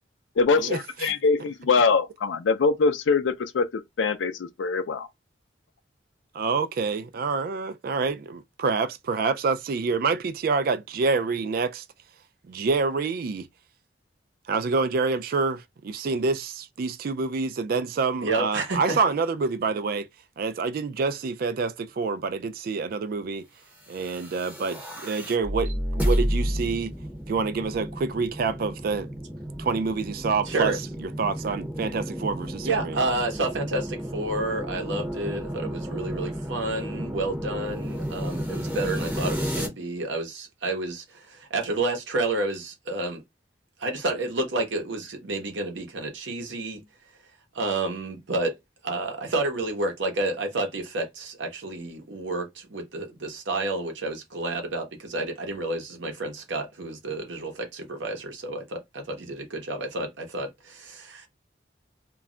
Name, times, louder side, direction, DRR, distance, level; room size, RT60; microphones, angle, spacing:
voice 1, 0.4-5.1, left 4 dB, 85° left, 0.4 m, -23 dB
voice 2, 6.3-11.8 12.5-13.5 14.5-20.1 20.4-23.4 23.9-26.9 27.3-29.1 29.6-30.7 31.0-33.0, right 4 dB, 50° right, 0.3 m, -27 dB
voice 3, 18.2-19.0 30.4-30.8 32.6-43.2 43.8-46.8 47.5-48.6 48.8-61.3, right 2 dB, 85° right, 0.8 m, -30 dB
sound 1, 23.9-39.7, equal, 10° right, 0.6 m, -32 dB
2.3 x 2.1 x 3.6 m
head